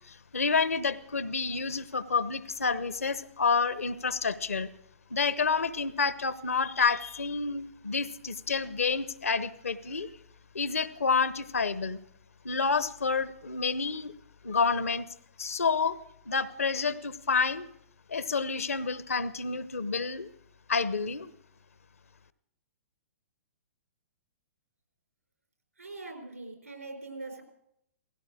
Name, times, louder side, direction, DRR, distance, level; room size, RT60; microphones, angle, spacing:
voice 1, 0.1-4.7 5.1-10.1 10.5-12.0 12.4-14.1 14.4-15.1 15.4-16.0 16.3-17.7 18.1-20.3 20.7-21.3, left 5 dB, 75° left, 15 dB, 1.0 m, -29 dB
voice 2, 25.8-27.4, right 3 dB, 80° right, 4 dB, 4.5 m, -42 dB
17.0 x 16.0 x 4.9 m, 0.74 s
figure-of-eight pair, 115°, 8 cm